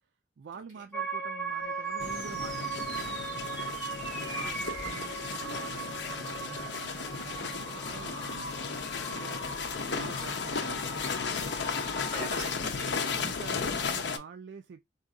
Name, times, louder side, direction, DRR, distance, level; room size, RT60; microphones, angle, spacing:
voice 1, 0.4-3.6 4.3-9.4 9.8-11.1 12.2-12.4 13.2-14.8, right 5 dB, 75° right, 0.4 m, -47 dB
sound 1, 0.9-11.4, right 5 dB, 5° left, 0.8 m, -39 dB
sound 2, 1.5-13.9, left 1 dB, 20° right, 2.2 m, -44 dB
sound 3, 2.0-14.2, left 5 dB, 80° left, 0.6 m, -35 dB
voice 2, 4.0-5.4 9.4-10.2 12.1-13.6, right 1 dB, 45° right, 2.1 m, -45 dB
3.9 x 2.6 x 2.4 m
head